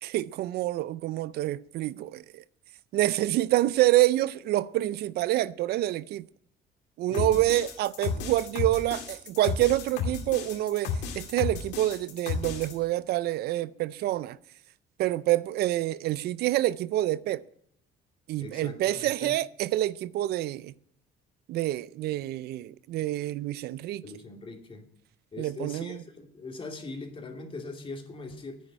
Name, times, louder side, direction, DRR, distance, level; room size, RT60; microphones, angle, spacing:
voice 1, 0.0-2.4 2.9-6.3 7.0-14.4 15.0-17.4 18.3-20.7 21.5-24.0 25.4-26.0, right 15 dB, 70° right, 0.4 m, -27 dB
sound 1, 7.1-12.7, left 5 dB, 85° left, 2.4 m, -33 dB
voice 2, 7.1-7.4 18.4-19.3 24.0-24.8 25.3-28.6, left 3 dB, 30° left, 2.5 m, -41 dB
10.5 x 9.3 x 10.0 m
cardioid pair, 110°, 17 cm